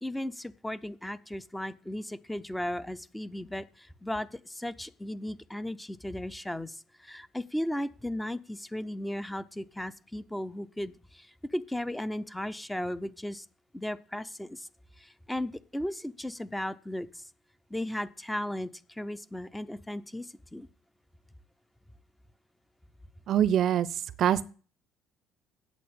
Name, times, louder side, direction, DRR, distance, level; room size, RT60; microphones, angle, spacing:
voice 1, 0.0-13.5 13.7-14.7 15.0-17.2 17.7-20.7, left 1 dB, 5° left, 14 dB, 0.6 m, -36 dB
voice 2, 23.3-24.4, right 10 dB, 55° right, 20 dB, 0.6 m, -25 dB
8.4 x 7.6 x 8.6 m, 0.40 s
cardioid pair, 105°, 0 cm